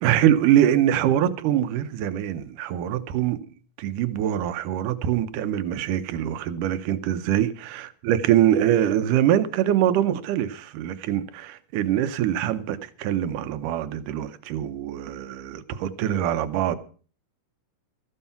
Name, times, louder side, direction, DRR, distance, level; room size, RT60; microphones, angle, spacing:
voice 1, 0.0-3.4 3.8-16.8, right 11 dB, 90° right, 2.4 m, -23 dB
13.5 x 11.0 x 5.8 m
omnidirectional pair, 3.6 m